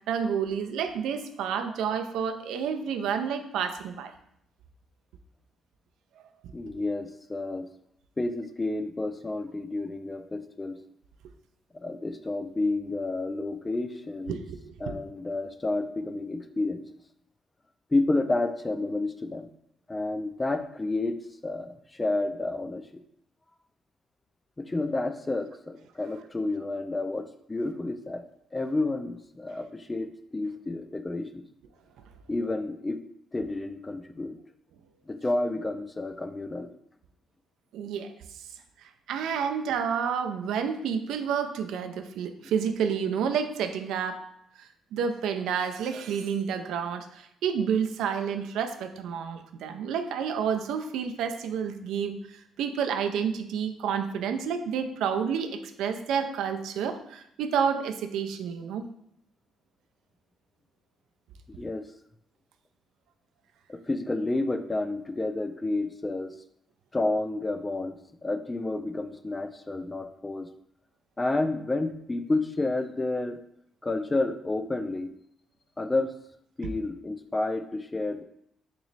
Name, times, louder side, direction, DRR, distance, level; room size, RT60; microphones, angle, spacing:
voice 1, 0.1-4.1 6.2-6.3 6.7-6.8 14.3-14.7 37.7-38.1 38.8-44.2 44.6-58.9, right 7 dB, 85° right, 7 dB, 0.3 m, -30 dB
voice 2, 6.5-7.7 8.2-10.8 11.7-14.4 14.8-16.8 17.9-19.5 19.9-22.8 24.6-28.2 28.5-31.4 32.3-33.0 33.3-34.4 35.1-36.7 61.5-61.9 63.7-66.3 66.9-70.5 71.2-73.4 73.8-75.1 75.8-76.1 76.6-78.2, left 2 dB, 20° left, 8 dB, 0.3 m, -30 dB
3.0 x 3.0 x 3.9 m, 0.73 s
cardioid pair, 90°, 0 cm